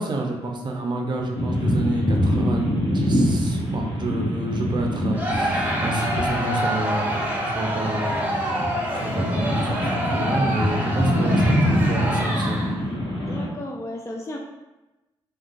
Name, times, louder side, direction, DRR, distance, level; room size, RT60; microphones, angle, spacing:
voice 1, 0.0-8.5 8.9-12.6, right 2 dB, 45° right, 1 dB, 0.5 m, -29 dB
sound 1, 1.3-13.5, equal, 45° left, 1.2 m, -25 dB
Crowd, 5.1-12.9, equal, 15° right, 0.9 m, -27 dB
voice 2, 6.3-6.6 11.3-11.4 13.2-14.4, left 1 dB, 25° left, 0 dB, 0.4 m, -35 dB
3.5 x 2.3 x 2.4 m, 1.0 s
supercardioid pair, 55°, 11 cm